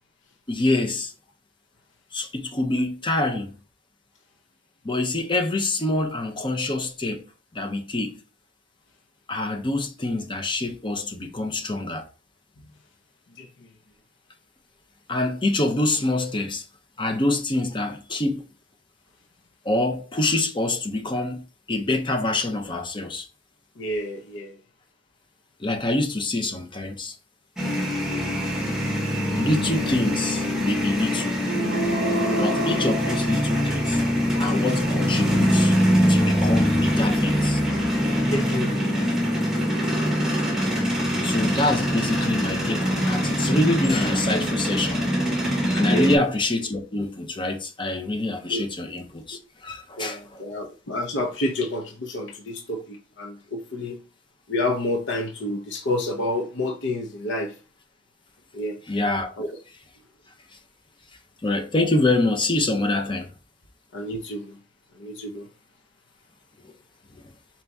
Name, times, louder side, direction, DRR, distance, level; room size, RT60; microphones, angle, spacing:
voice 1, 0.5-1.1 2.1-3.5 4.8-7.3 7.5-8.2 9.3-12.1 15.1-16.6 17.0-18.4 19.6-23.3 25.6-27.1 29.3-31.4 32.3-34.0 34.4-35.8 36.1-37.6 41.2-45.1 45.7-50.4 58.9-59.3 61.4-63.3, left 2 dB, 25° left, 0.7 m, -25 dB
voice 2, 23.8-24.6 32.3-32.4 34.3-34.5 38.3-38.9 45.9-46.2 48.5-48.6 50.0-54.0 54.5-57.5 58.5-58.8 59.4-59.5 63.9-64.6 65.0-65.4, left 1 dB, 65° left, 0.7 m, -29 dB
sound 1, 27.6-46.1, equal, 5° right, 1.0 m, -23 dB
sound 2, 31.4-34.1, right 1 dB, 65° right, 0.6 m, -28 dB
4.4 x 2.8 x 3.5 m
head